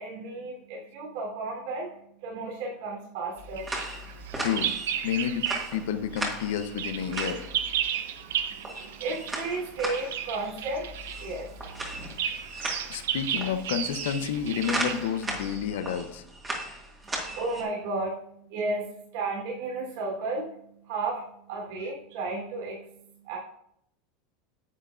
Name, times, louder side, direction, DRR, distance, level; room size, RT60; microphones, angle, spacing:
voice 1, 0.0-3.7 8.5-12.1 17.0-23.4, right 3 dB, 65° right, -2 dB, 3.7 m, -34 dB
sound 1, 3.4-17.6, right 1 dB, 15° right, 2.0 m, -37 dB
Bird vocalization bird call bird song, 3.6-5.8 6.1-15.6, right 9 dB, 90° right, 0.7 m, -34 dB
voice 2, 4.4-4.7 5.0-7.4 12.9-16.2, left 8 dB, 80° left, 10 dB, 0.8 m, -30 dB
9.8 x 7.5 x 2.6 m, 0.72 s
supercardioid pair, 145°, 0 cm